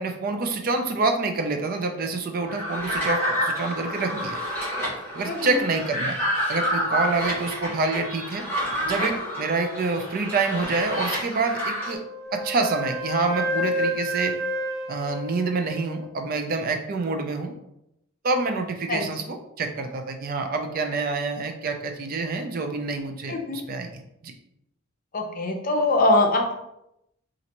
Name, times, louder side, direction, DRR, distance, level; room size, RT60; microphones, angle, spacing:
voice 1, 0.0-4.4 5.1-6.2 6.5-8.4 8.8-12.0 12.3-14.3 14.9-17.5 18.2-24.3, right 3 dB, 45° right, 5 dB, 0.4 m, -27 dB
sound 1, 2.5-11.9, equal, 10° left, 1.5 m, -29 dB
voice 2, 5.3-5.6 18.9-19.1 23.3-23.6 25.1-26.6, left 2 dB, 40° left, 2 dB, 0.6 m, -22 dB
Wind instrument woodwind instrument, 11.8-16.1, equal, 5° right, 0.9 m, -30 dB
4.1 x 2.5 x 2.9 m, 0.82 s
head